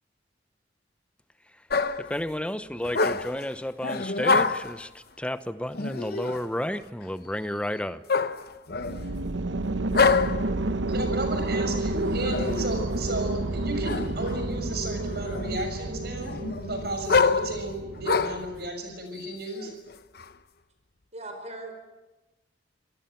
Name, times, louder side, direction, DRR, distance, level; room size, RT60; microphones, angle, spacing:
sound 1, 1.7-2.2 2.8-3.4 3.8-4.8 5.7-6.5 8.1-9.1 9.9-10.5 12.0-12.7 13.8-14.4 14.9-15.7 16.2-18.5 19.2-20.3, left 4 dB, 55° left, 0.9 m, -26 dB
voice 1, 2.0-4.9 5.2-8.0, left 1 dB, 5° left, 12 dB, 0.9 m, -32 dB
sound 2, 8.7-18.7, right 2 dB, 80° right, 1.0 m, -30 dB
voice 2, 10.9-16.3 16.7-19.7, right 1 dB, 55° right, 6 dB, 6.6 m, -33 dB
voice 3, 21.1-21.7, right 2 dB, 35° right, 5 dB, 4.9 m, -38 dB
26.0 x 19.0 x 9.2 m, 1.1 s
head